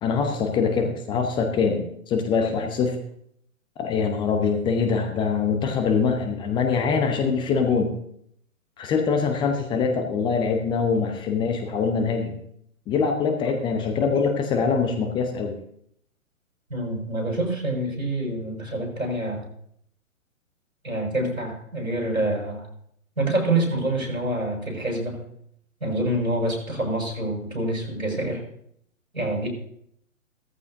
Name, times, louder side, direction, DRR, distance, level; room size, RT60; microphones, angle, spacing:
voice 1, 0.0-3.0 3.8-7.9 8.8-12.4 12.9-15.5, left 5 dB, 10° left, 4 dB, 0.8 m, -23 dB
voice 2, 16.7-19.5 20.8-22.7 23.2-25.2 25.8-28.4 29.1-29.5, right 1 dB, 85° right, -1 dB, 6.5 m, -26 dB
17.0 x 14.0 x 2.7 m, 0.69 s
figure-of-eight pair, 120°, 41 cm